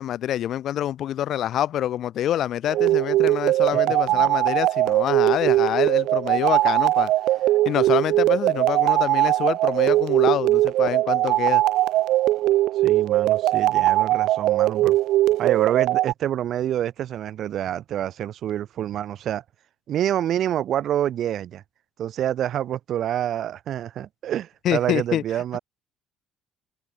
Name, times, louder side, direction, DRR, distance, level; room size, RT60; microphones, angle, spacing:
voice 1, 0.0-7.1 7.6-11.6 24.6-25.2, left 11 dB, 55° left, 1.1 m, -26 dB
sound 1, 2.7-16.1, right 15 dB, 75° right, 1.2 m, -20 dB
voice 2, 12.8-15.0 15.4-19.4 19.9-21.6 22.0-25.6, right 11 dB, 50° right, 5.6 m, -27 dB
cardioid pair, 170°, 0 cm